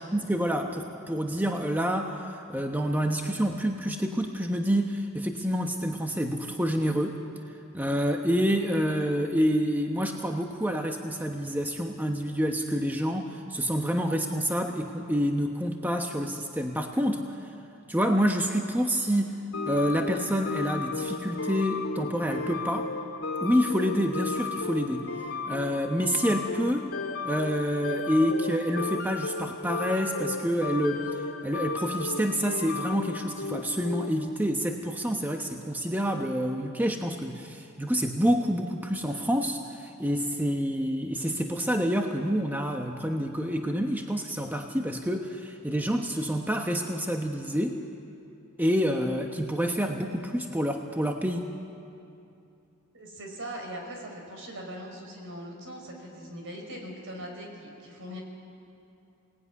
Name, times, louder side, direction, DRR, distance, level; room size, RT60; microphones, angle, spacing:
voice 1, 0.1-7.2 7.7-17.2 17.9-19.4 19.7-22.9 23.4-25.1 25.5-26.9 27.2-47.8 48.6-51.5, equal, 10° right, 3 dB, 1.1 m, -28 dB
sound 1, 19.5-34.3, left 4 dB, 85° left, 2.2 m, -34 dB
voice 2, 52.9-58.2, equal, 60° right, 2 dB, 5.6 m, -40 dB
27.5 x 19.0 x 9.7 m, 2.7 s
head